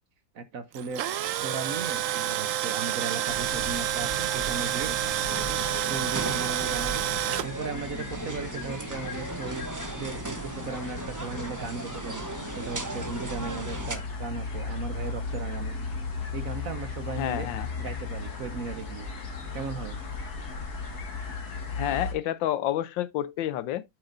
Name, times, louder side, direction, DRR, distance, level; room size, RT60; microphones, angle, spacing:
voice 1, 0.3-1.1 1.4-4.9 5.9-7.1 7.4-12.2 12.5-15.8 16.3-17.5 17.8-19.1 19.5-20.0, right 5 dB, 55° right, 1.1 m, -37 dB
Tools, 0.7-7.5, right 12 dB, 90° right, 0.7 m, -29 dB
sound 1, 3.3-22.1, left 3 dB, 55° left, 2.5 m, -37 dB
sound 2, 5.2-14.0, right 2 dB, 20° right, 0.5 m, -37 dB
voice 2, 17.2-17.7 21.7-23.8, left 12 dB, 75° left, 1.4 m, -29 dB
8.8 x 7.7 x 2.6 m
omnidirectional pair, 2.1 m